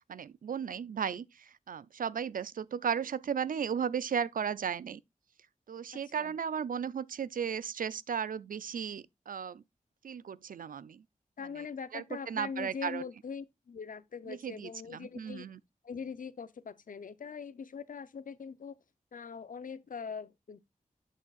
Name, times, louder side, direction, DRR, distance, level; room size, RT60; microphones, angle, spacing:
voice 1, 0.1-5.0 5.7-9.6 10.0-11.0 11.6-11.7 11.9-13.0 14.3-15.6, right 7 dB, 80° right, 0.4 m, -35 dB
voice 2, 5.9-6.4 11.4-15.5 15.8-18.8 19.1-20.6, left 6 dB, 75° left, 0.7 m, -42 dB
10.5 x 6.4 x 2.4 m
wide cardioid pair, 70°, 14 cm